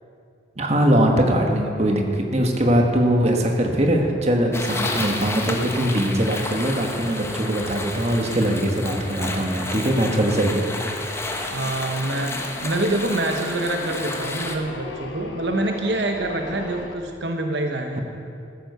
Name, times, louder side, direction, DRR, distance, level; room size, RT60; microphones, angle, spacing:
voice 1, 0.6-10.7 11.0-11.2, right 1 dB, 35° right, 2 dB, 1.4 m, -21 dB
sound 1, 1.0-17.0, left 2 dB, 80° left, 1.3 m, -41 dB
sound 2, 4.5-14.6, left 2 dB, 15° left, 1.0 m, -31 dB
voice 2, 11.5-18.0, right 2 dB, 70° right, 4 dB, 1.0 m, -26 dB
14.5 x 9.4 x 6.7 m, 2.4 s
head